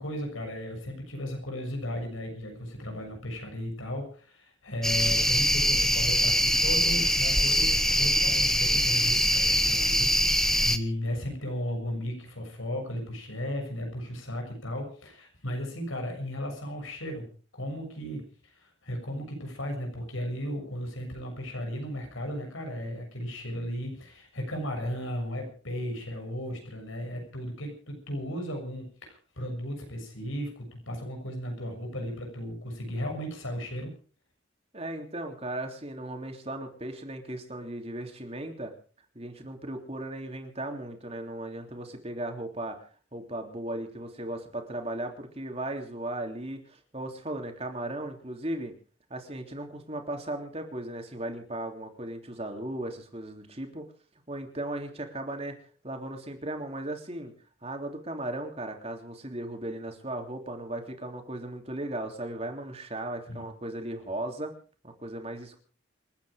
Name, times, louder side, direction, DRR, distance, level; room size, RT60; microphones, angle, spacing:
voice 1, 0.0-17.2 17.5-33.9 63.3-63.4, equal, 85° left, 3 dB, 6.7 m, -35 dB
sound 1, 4.8-10.8, equal, ahead, 1.0 m, -23 dB
voice 2, 34.7-38.7 39.1-48.7 49.1-53.9 54.3-55.6 55.8-57.3 57.6-64.5 64.8-65.6, right 1 dB, 30° right, 4 dB, 3.2 m, -36 dB
28.0 x 9.5 x 5.1 m, 0.41 s
head